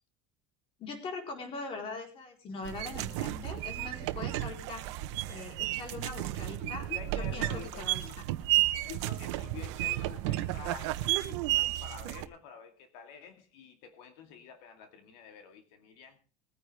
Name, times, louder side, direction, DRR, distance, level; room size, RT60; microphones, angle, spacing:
voice 1, 0.8-4.8 5.3-6.9 7.2-8.0, left 3 dB, 40° left, 3 dB, 4.3 m, -41 dB
sound 1, 2.6-12.3, right 16 dB, 80° right, 1.1 m, -32 dB
voice 2, 6.6-8.4 8.8-16.2, left 7 dB, 70° left, 6 dB, 2.3 m, -48 dB
21.0 x 9.6 x 3.5 m, 0.33 s
cardioid pair, 145°, 15 cm